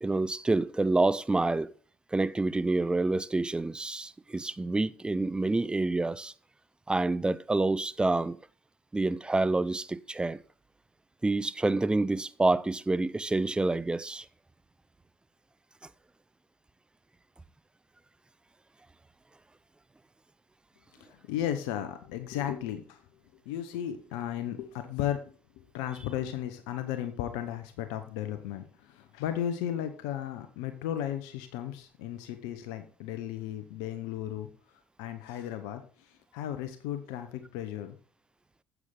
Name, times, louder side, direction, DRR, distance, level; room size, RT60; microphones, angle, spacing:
voice 1, 0.0-1.7 2.1-6.3 6.9-8.4 8.9-10.4 11.2-14.2, right 2 dB, 15° right, 0.6 m, -27 dB
voice 2, 21.0-23.1 23.4-38.0, left 11 dB, 75° left, 0.9 m, -35 dB
9.5 x 8.1 x 3.7 m
hypercardioid pair, 60°, 7 cm